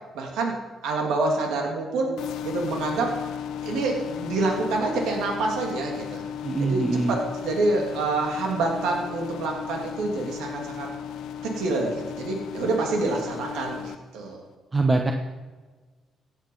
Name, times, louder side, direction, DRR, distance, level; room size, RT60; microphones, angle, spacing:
voice 1, 0.1-0.6 0.8-2.1 2.4-3.2 3.6-6.2 6.6-10.9 11.4-14.4, right 3 dB, 90° right, 1 dB, 2.9 m, -27 dB
sound 1, 2.2-13.9, left 9 dB, 85° left, 0.8 m, -35 dB
voice 2, 6.4-7.2 14.7-15.1, right 3 dB, 25° right, 4 dB, 1.1 m, -23 dB
16.5 x 9.1 x 5.6 m, 1.3 s
cardioid pair, 90°, 0 cm